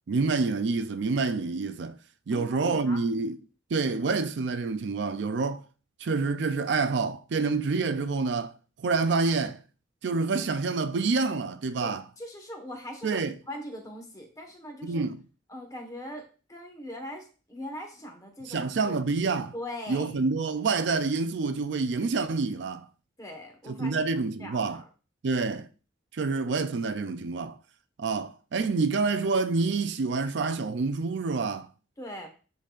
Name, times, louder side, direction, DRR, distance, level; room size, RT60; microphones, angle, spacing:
voice 1, 0.1-2.0 2.3-3.4 3.7-5.6 6.0-8.5 8.8-9.6 10.0-12.0 13.0-13.3 14.8-15.2 18.5-19.5 19.9-22.9 23.7-24.8 25.2-25.7 26.1-27.6 28.0-31.7, right 4 dB, 65° right, 0.4 m, -27 dB
voice 2, 2.3-3.0 11.8-15.0 15.5-18.7 19.5-20.2 23.2-24.1 24.4-24.9 32.0-32.3, left 1 dB, 20° left, 1.3 m, -41 dB
10.0 x 3.9 x 2.5 m
head